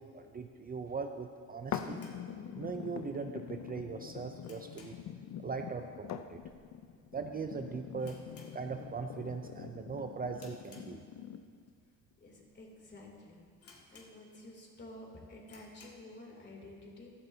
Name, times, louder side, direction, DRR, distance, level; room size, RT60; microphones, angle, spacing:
voice 1, 0.0-2.0 2.5-5.0 5.4-6.4 7.1-8.2 8.5-11.0, right 5 dB, 30° right, 5 dB, 0.5 m, -40 dB
sound 1, 1.6-3.0 3.3-3.4 3.9-5.2 5.5-5.8 6.1-6.2 6.9-7.2 7.4-7.5 7.9-9.1 9.5-9.8 10.3-11.4 12.0-12.1 12.7-12.8 13.0-13.1 13.6-14.6 14.9-15.0 15.4-16.1, left 3 dB, 50° left, 2.1 m, -59 dB
sound 2, 1.7-11.7 12.3-12.4, left 9 dB, 65° left, 0.6 m, -44 dB
voice 2, 12.2-13.4 13.9-17.1, left 1 dB, 35° left, -1 dB, 3.1 m, -51 dB
15.5 x 12.0 x 2.8 m, 2.1 s
cardioid pair, 90°, 30 cm